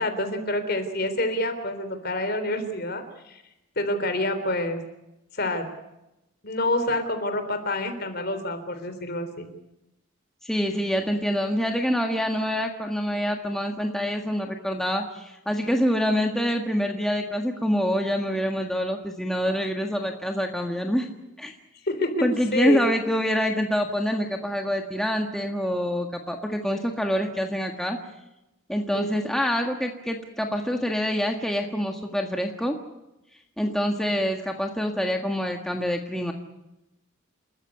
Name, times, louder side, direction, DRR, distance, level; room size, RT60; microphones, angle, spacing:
voice 1, 0.0-3.4 3.8-4.8 5.3-5.6 6.4-9.5 21.8-22.8 28.9-29.2, left 1 dB, 50° left, 9 dB, 3.6 m, -27 dB
voice 2, 10.4-21.1 21.4-21.5 22.2-28.0 28.7-32.7 33.6-36.3, equal, ahead, 2 dB, 1.6 m, -26 dB
28.5 x 14.0 x 9.7 m, 0.92 s
head